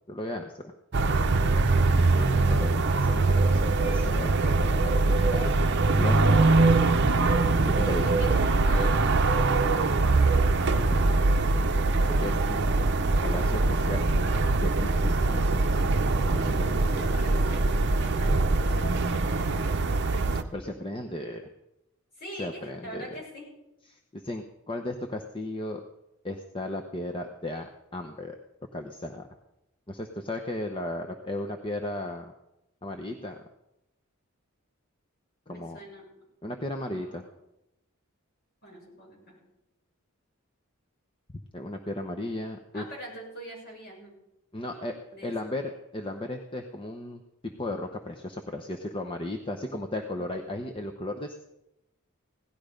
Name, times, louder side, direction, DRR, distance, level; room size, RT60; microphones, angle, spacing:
voice 1, 0.1-0.7 2.2-5.5 6.0-6.4 7.7-8.1 10.8-11.6 12.1-12.9 13.2-14.0 14.6-15.5 16.3-17.1 20.5-21.4 22.4-23.1 23.9-25.8 26.2-28.4 28.7-29.3 29.9-32.3 32.8-33.4 35.5-35.8 36.4-37.2 41.5-42.9 44.5-45.0 45.2-51.4, left 1 dB, 25° left, 4 dB, 0.9 m, -35 dB
sound 1, 0.9-20.4, right 3 dB, 50° right, 0.7 m, -23 dB
voice 2, 6.2-6.8 8.0-10.4 16.6-20.3 22.2-23.4 35.5-36.1 36.8-37.3 38.6-39.3 42.7-44.1 44.7-45.5 49.9-50.3, equal, 45° left, -2 dB, 6.7 m, -44 dB
17.5 x 12.0 x 5.2 m, 0.89 s
head